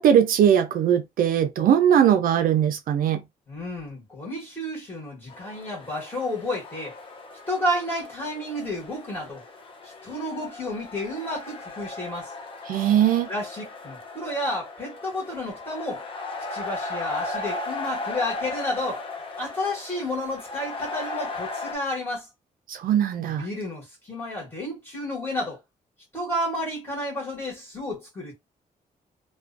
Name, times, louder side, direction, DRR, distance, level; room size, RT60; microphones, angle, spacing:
voice 1, 0.0-3.2 12.7-13.3 22.7-23.5, right 9 dB, 75° right, 0.4 m, -20 dB
voice 2, 3.5-7.0 7.5-9.4 9.8-12.3 13.3-16.1 16.5-19.0 19.4-22.3 23.2-25.6 26.1-28.3, left 1 dB, 15° left, 1.2 m, -31 dB
sound 1, 5.3-21.8, left 3 dB, 35° left, 0.5 m, -36 dB
2.5 x 2.2 x 2.5 m
wide cardioid pair, 155°, 15 cm